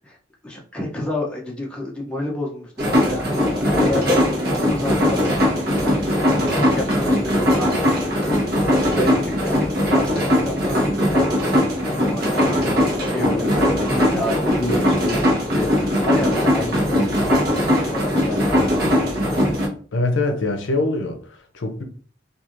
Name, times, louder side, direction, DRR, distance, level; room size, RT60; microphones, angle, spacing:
voice 1, 0.4-7.7 8.5-18.8, left 1 dB, 5° left, 0.6 m, -30 dB
sound 1, 2.8-19.7, equal, 50° right, 0.9 m, -20 dB
voice 2, 19.9-21.8, left 2 dB, 70° left, 0.6 m, -23 dB
3.0 x 2.4 x 2.5 m
head